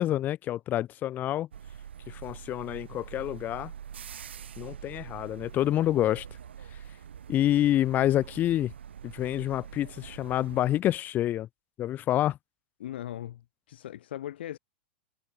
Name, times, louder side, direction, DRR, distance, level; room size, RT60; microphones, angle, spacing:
voice 1, 0.0-1.5 2.1-3.7 4.6-6.2 7.3-8.7 9.0-11.5 11.8-12.4, left 13 dB, 30° left, 0.4 m, -27 dB
sound 1, 1.5-10.8, right 8 dB, 80° right, 0.8 m, -45 dB
voice 2, 12.8-14.6, left 12 dB, 70° left, 1.3 m, -39 dB
hypercardioid pair, 105°, 6 cm